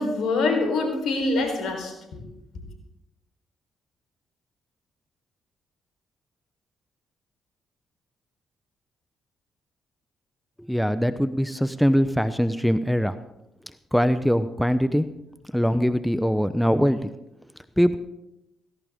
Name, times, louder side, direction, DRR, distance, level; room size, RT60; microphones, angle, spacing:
voice 1, 0.0-2.2, left 3 dB, 70° left, 4 dB, 4.3 m, -25 dB
voice 2, 10.7-13.2 13.9-15.1 15.5-17.1 17.8-18.0, equal, ahead, 12 dB, 0.9 m, -22 dB
17.0 x 16.5 x 3.7 m, 0.88 s
hypercardioid pair, 50°, 0 cm